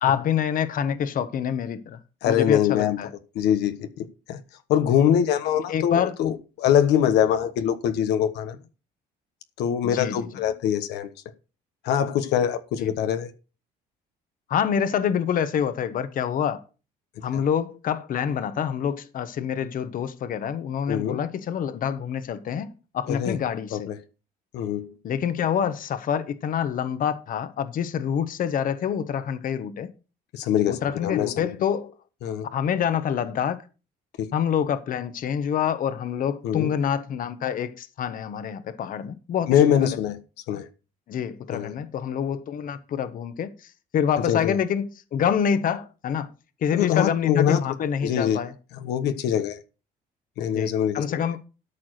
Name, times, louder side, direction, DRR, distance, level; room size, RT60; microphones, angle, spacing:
voice 1, 0.0-2.0 2.3-3.1 5.7-6.1 9.9-10.2 12.8-12.9 14.5-16.6 17.2-23.9 25.0-29.9 30.7-31.9 32.5-33.6 34.3-39.5 39.8-39.9 41.1-43.5 43.9-46.3 46.6-48.5 50.5-51.4, left 8 dB, 55° left, 1.2 m, -26 dB
voice 2, 2.2-3.0 3.3-4.4 4.7-8.6 9.6-11.1 11.8-13.3 17.3-17.4 20.9-21.2 23.1-23.4 23.7-24.0 24.5-24.9 30.3-31.5 32.2-32.5 34.2-34.3 36.4-36.7 39.5-40.2 40.5-40.7 41.5-41.7 44.2-44.6 46.7-47.6 48.0-48.4 48.8-49.6 50.4-51.2, left 9 dB, 85° left, 1.1 m, -23 dB
13.0 x 4.7 x 6.4 m
cardioid pair, 110°, 17 cm